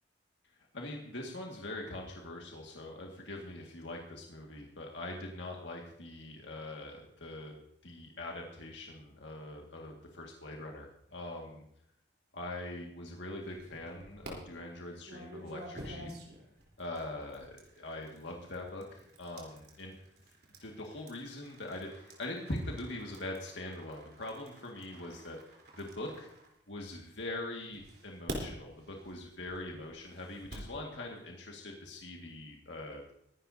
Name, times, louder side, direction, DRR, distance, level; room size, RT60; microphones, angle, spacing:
voice 1, 0.7-7.5 7.8-11.6 12.3-16.1 16.8-20.0 20.6-25.4 25.8-26.3 26.7-33.1, left 1 dB, 75° left, -1 dB, 2.0 m, -42 dB
sound 1, 13.4-14.3 15.0-27.1 27.7-30.8, right 1 dB, 55° right, 3.7 m, -49 dB
22.5 x 11.5 x 2.8 m, 0.74 s
head